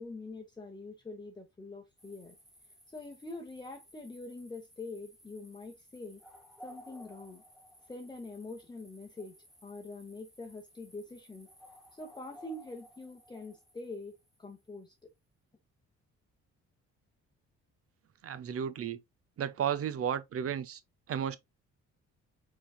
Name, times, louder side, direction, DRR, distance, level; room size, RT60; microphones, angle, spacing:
voice 1, 0.0-2.4 2.9-6.2 6.6-7.4 7.9-11.5 11.9-15.1, left 2 dB, 15° left, 0.8 m, -45 dB
sound 1, 2.0-14.8, equal, ahead, 1.5 m, -57 dB
voice 2, 18.2-19.0 19.4-20.8 21.1-21.4, right 8 dB, 50° right, 0.6 m, -33 dB
4.6 x 4.0 x 2.3 m
cardioid pair, 90°, 30 cm